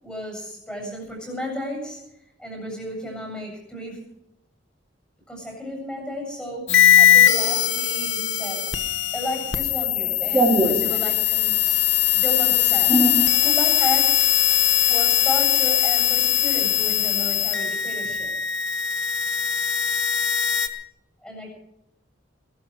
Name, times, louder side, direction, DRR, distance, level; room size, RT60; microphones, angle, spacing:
voice 1, 0.0-2.0 2.4-4.0 5.3-8.7 9.1-11.6 12.1-12.9 13.4-14.3 14.9-18.3 21.2-21.5, equal, 5° left, 0 dB, 7.6 m, -33 dB
sound 1, 6.7-20.7, left 11 dB, 80° left, 1.4 m, -20 dB
voice 2, 10.3-11.0 12.9-13.2, right 1 dB, 10° right, -4 dB, 2.9 m, -20 dB
21.0 x 13.0 x 4.9 m, 0.81 s
head